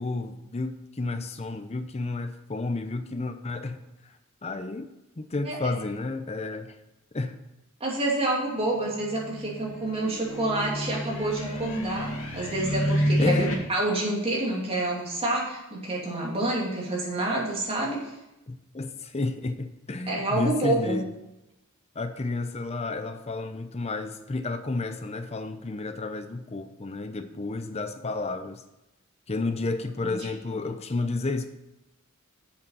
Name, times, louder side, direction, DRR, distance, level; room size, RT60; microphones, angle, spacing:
voice 1, 0.0-3.8 4.4-6.7 7.1-7.4 13.2-13.5 18.5-21.0 22.0-28.6 29.3-31.5, left 3 dB, 30° left, 8 dB, 0.6 m, -31 dB
voice 2, 7.8-18.1 20.1-21.0 30.0-30.3, right 2 dB, 25° right, -3 dB, 2.6 m, -28 dB
sound 1, 8.6-13.5, equal, 70° left, 2.2 m, -29 dB
7.9 x 7.2 x 5.6 m, 0.94 s
head